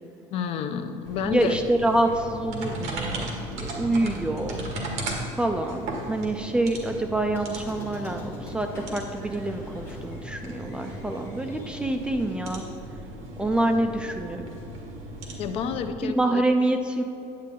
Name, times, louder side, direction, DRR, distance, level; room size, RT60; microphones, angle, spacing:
voice 1, 0.3-1.6 15.4-16.4, left 7 dB, 50° left, 9 dB, 0.5 m, -29 dB
sound 1, 1.0-15.9, right 1 dB, 60° right, 1.7 m, -36 dB
voice 2, 1.3-3.3 3.6-4.6 5.4-12.6 13.4-14.5 16.0-17.0, right 1 dB, 10° right, 5 dB, 0.3 m, -26 dB
Squeak, 7.3-12.7, equal, 15° left, 1.9 m, -44 dB
9.8 x 8.5 x 3.7 m, 3.0 s
cardioid pair, 170°, 13 cm